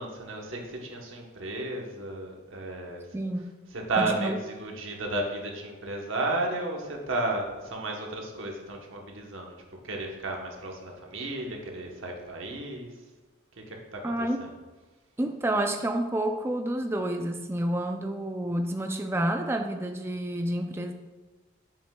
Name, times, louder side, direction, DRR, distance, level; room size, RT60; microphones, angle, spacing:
voice 1, 0.0-3.0 3.7-9.6 9.8-12.9 13.6-14.5, right 2 dB, 70° right, 1 dB, 1.0 m, -33 dB
voice 2, 3.1-3.5 4.0-4.4 14.0-14.4 15.2-20.9, right 1 dB, 10° right, 5 dB, 0.3 m, -29 dB
7.0 x 6.1 x 2.3 m, 1.2 s
head